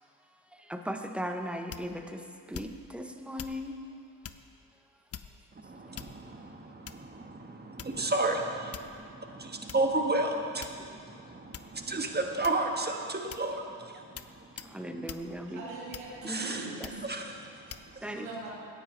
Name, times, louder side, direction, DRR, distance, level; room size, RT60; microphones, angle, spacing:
voice 1, 0.2-3.8 5.9-6.0 14.6-15.6 16.2-16.9 18.0-18.3, equal, ahead, 5 dB, 1.0 m, -38 dB
sound 1, 1.7-2.1 2.5-2.9 3.4-3.6 4.2-4.5 5.1-5.5 5.9-6.4 6.9-7.2 7.8-8.1 8.7-9.0 9.7-9.8 10.6-11.0 11.5-11.8 12.4-12.8 13.3-13.5 14.2-14.3 14.6-14.8 15.1-15.3 15.9-16.3 16.8-17.1 17.7-17.9, left 8 dB, 30° left, 0.5 m, -44 dB
voice 2, 5.6-14.8 16.3-16.7 17.0-18.0, right 2 dB, 20° right, 3 dB, 1.5 m, -33 dB
voice 3, 15.5-17.0 18.1-18.6, right 3 dB, 90° right, -6 dB, 3.0 m, -41 dB
17.0 x 9.8 x 3.3 m, 2.3 s
supercardioid pair, 60°, 50 cm